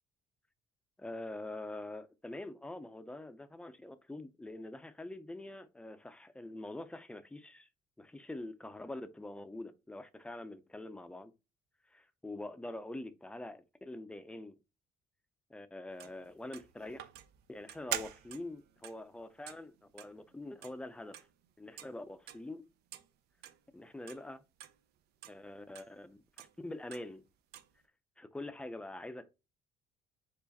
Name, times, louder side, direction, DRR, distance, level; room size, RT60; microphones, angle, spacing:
voice 1, 1.0-7.7 8.0-11.3 11.9-14.6 15.5-17.1 17.5-21.2 21.6-22.6 23.7-24.4 25.3-27.2 28.2-29.3, left 2 dB, 5° left, 0.5 m, -45 dB
sound 1, 16.0-21.5 21.8-21.9 22.3-22.5 22.9-23.1 23.4-23.6 24.1-24.2 24.6-24.8 25.2-25.4 25.8-25.9 26.4-26.5 26.9-27.1 27.5-27.7, right 11 dB, 75° right, 0.5 m, -45 dB
4.7 x 2.5 x 4.0 m
cardioid pair, 110°, 17 cm